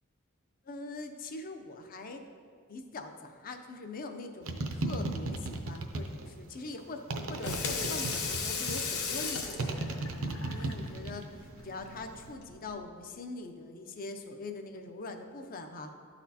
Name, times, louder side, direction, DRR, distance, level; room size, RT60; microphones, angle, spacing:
voice 1, 0.7-2.3 2.7-11.2 11.6-15.9, left 2 dB, 40° left, 6 dB, 0.5 m, -43 dB
sound 1, 4.5-6.3 7.1-8.9 9.6-11.3 11.6-12.1, right 2 dB, 65° right, 0.6 m, -35 dB
Water tap faucet / Sink (filling or washing), 7.2-12.7, left 5 dB, 85° left, 0.8 m, -37 dB
12.0 x 4.1 x 2.8 m, 2.2 s
head